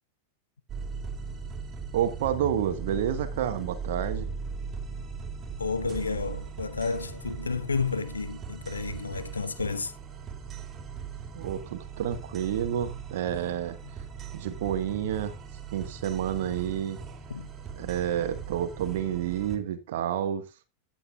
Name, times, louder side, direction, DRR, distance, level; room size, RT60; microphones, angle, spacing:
sound 1, 0.7-19.6, right 5 dB, 25° right, 3.3 m, -39 dB
voice 1, 1.9-4.3 11.3-13.8 14.3-15.3 15.7-17.0 17.8-20.4, right 10 dB, 60° right, 1.5 m, -29 dB
voice 2, 5.6-9.9 13.9-14.0 17.3-17.5, left 4 dB, 80° left, 1.0 m, -31 dB
15.5 x 9.0 x 2.4 m
figure-of-eight pair, 90°, 0 cm